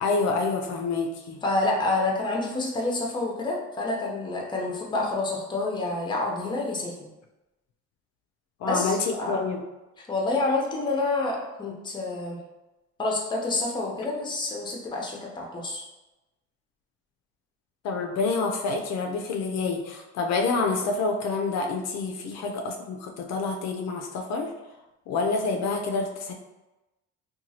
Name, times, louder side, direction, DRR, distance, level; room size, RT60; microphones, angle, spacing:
voice 1, 0.0-1.4 8.6-9.6 17.8-24.5 25.1-26.3, left 4 dB, 65° left, 2 dB, 0.4 m, -27 dB
voice 2, 1.4-6.9 8.6-9.4 10.1-12.4 13.0-15.8, left 2 dB, 15° left, -1 dB, 0.6 m, -28 dB
2.9 x 2.3 x 2.7 m, 1.0 s
cardioid pair, 115°, 29 cm